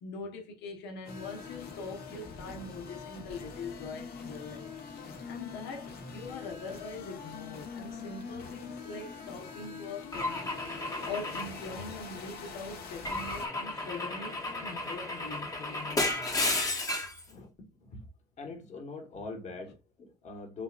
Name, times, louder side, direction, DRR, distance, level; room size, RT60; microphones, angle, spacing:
voice 1, 0.0-4.8 5.2-10.5 11.0-16.2 19.1-19.3, left 3 dB, 80° left, 1.1 m, -42 dB
sound 1, 1.0-13.5, left 5 dB, 65° left, 1.5 m, -44 dB
Car / Engine / Glass, 10.1-12.3 13.0-17.2, left 2 dB, 20° left, 1.1 m, -33 dB
voice 2, 17.3-18.1 18.4-20.6, left 3 dB, 45° left, 1.6 m, -43 dB
6.9 x 2.5 x 2.5 m
cardioid pair, 110°, 17 cm